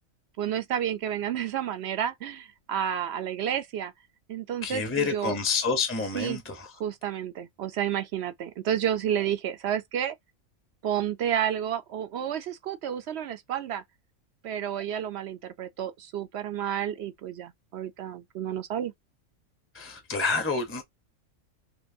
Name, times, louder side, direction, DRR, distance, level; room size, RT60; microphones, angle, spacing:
voice 1, 0.4-3.9 4.3-5.4 6.1-6.4 6.8-10.1 10.8-13.8 14.4-18.9, right 9 dB, 65° right, 0.7 m, -30 dB
voice 2, 4.6-6.7 19.7-20.8, left 4 dB, 10° left, 0.7 m, -28 dB
4.5 x 2.8 x 2.6 m
omnidirectional pair, 1.5 m